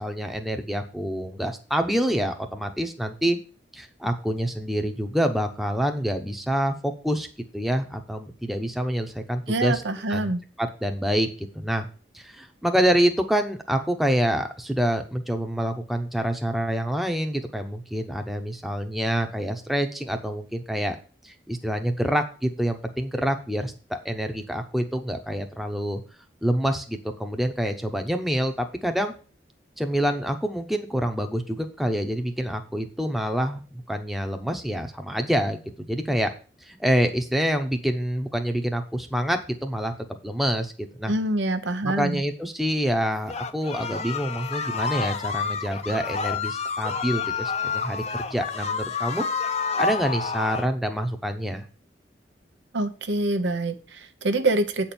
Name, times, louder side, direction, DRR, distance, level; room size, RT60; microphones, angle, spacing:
voice 1, 0.0-3.4 3.7-7.3 7.5-9.8 10.1-10.3 10.6-11.8 12.1-21.0 21.2-26.0 26.4-29.1 29.8-36.3 36.6-39.9 40.2-40.7 41.0-41.1 41.8-49.2 49.7-51.6, equal, ahead, 5 dB, 0.8 m, -26 dB
voice 2, 9.5-10.4 41.1-42.2 52.7-54.9, right 2 dB, 85° right, 8 dB, 1.1 m, -25 dB
sound 1, 43.3-50.7, left 5 dB, 35° left, 0.6 m, -29 dB
8.4 x 4.5 x 6.9 m, 0.37 s
head